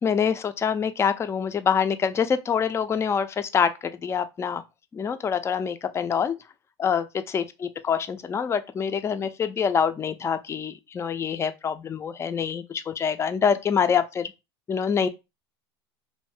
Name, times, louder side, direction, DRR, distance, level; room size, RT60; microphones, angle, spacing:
voice 1, 0.0-4.6 4.9-6.4 6.8-14.3 14.7-15.1, left 7 dB, 20° left, 0.4 m, -25 dB
2.6 x 2.6 x 3.4 m
hypercardioid pair, 90°, 14 cm